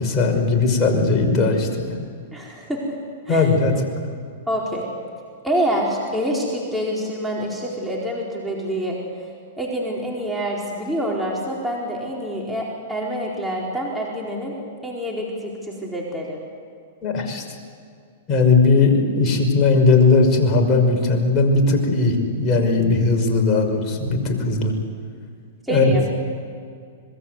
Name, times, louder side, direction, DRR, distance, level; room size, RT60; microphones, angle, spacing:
voice 1, 0.0-1.9 3.3-3.7 17.0-17.4 18.3-24.7 25.7-26.0, left 3 dB, 30° left, 2 dB, 5.7 m, -18 dB
voice 2, 2.3-3.0 3.3-3.5 4.5-4.8 5.4-9.0 9.6-14.6 14.8-16.4 25.6-26.1, equal, 5° right, -4 dB, 4.5 m, -26 dB
26.5 x 21.5 x 8.2 m, 2.3 s
hypercardioid pair, 125°, 0 cm